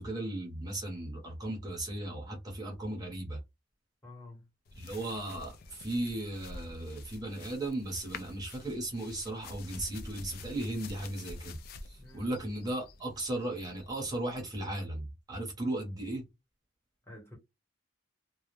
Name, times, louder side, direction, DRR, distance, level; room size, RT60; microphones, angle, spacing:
voice 1, 0.0-3.4 4.7-16.2, right 1 dB, 20° right, 0.8 m, -36 dB
voice 2, 4.0-4.5 12.0-12.4 17.1-17.4, left 2 dB, 15° left, 1.0 m, -49 dB
sound 1, 4.7-14.6, left 3 dB, 50° left, 0.3 m, -49 dB
2.2 x 2.0 x 3.0 m
head